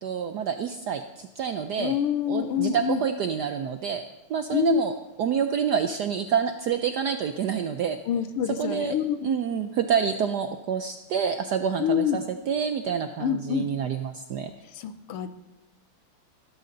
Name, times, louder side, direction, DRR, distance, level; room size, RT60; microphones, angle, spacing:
voice 1, 0.0-2.0 2.3-4.0 4.3-8.0 8.5-14.5, right 7 dB, 75° right, 8 dB, 0.9 m, -28 dB
voice 2, 1.8-3.0 4.5-4.8 8.1-9.3 11.8-12.2 13.2-13.7 14.8-15.3, left 8 dB, 90° left, 11 dB, 1.8 m, -26 dB
16.5 x 13.0 x 3.9 m, 1.0 s
omnidirectional pair, 2.4 m